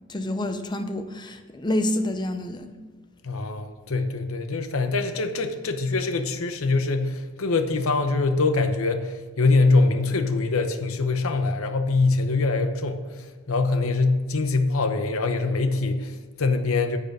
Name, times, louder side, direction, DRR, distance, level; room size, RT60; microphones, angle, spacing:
voice 1, 0.1-2.7, left 1 dB, 20° left, 8 dB, 0.6 m, -28 dB
voice 2, 3.2-13.0 13.5-17.0, left 3 dB, 75° left, 8 dB, 0.8 m, -23 dB
10.0 x 6.8 x 5.3 m, 1.4 s
head